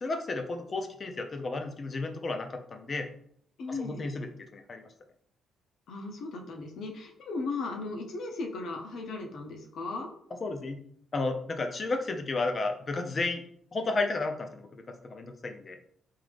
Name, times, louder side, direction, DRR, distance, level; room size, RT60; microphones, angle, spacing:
voice 1, 0.0-3.1 3.7-4.9 10.4-10.8 11.1-13.4 13.7-15.8, left 3 dB, 40° left, 5 dB, 0.6 m, -33 dB
voice 2, 3.6-4.1 5.9-10.1, left 3 dB, 70° left, 2 dB, 0.8 m, -36 dB
3.7 x 2.7 x 3.4 m, 0.67 s
cardioid pair, 90°, 0 cm